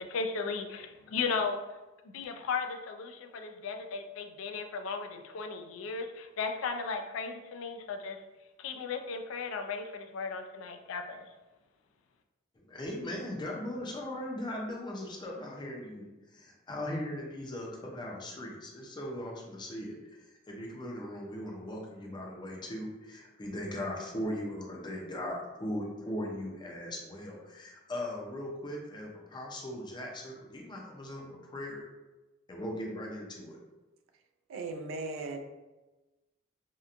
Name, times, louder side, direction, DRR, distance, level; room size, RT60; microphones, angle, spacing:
voice 1, 0.0-1.6 2.0-8.2 8.6-11.3, left 5 dB, 85° left, 6 dB, 0.3 m, -36 dB
voice 2, 12.5-31.8 32.5-33.6, left 1 dB, 25° left, -1 dB, 0.4 m, -39 dB
voice 3, 34.5-35.4, right 3 dB, 80° right, 5 dB, 0.3 m, -37 dB
2.8 x 2.2 x 2.4 m, 1.1 s
head